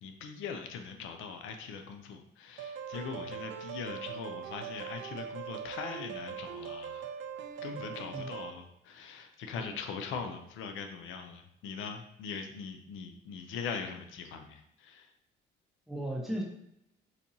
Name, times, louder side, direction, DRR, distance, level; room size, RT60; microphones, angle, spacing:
voice 1, 0.0-7.1 7.6-15.1, left 6 dB, 85° left, 5 dB, 0.5 m, -41 dB
sound 1, 2.6-8.5, right 7 dB, 70° right, 0.4 m, -41 dB
voice 2, 15.9-16.4, right 1 dB, ahead, -2 dB, 0.9 m, -36 dB
4.1 x 2.6 x 2.7 m, 0.79 s
cardioid pair, 90°, 20 cm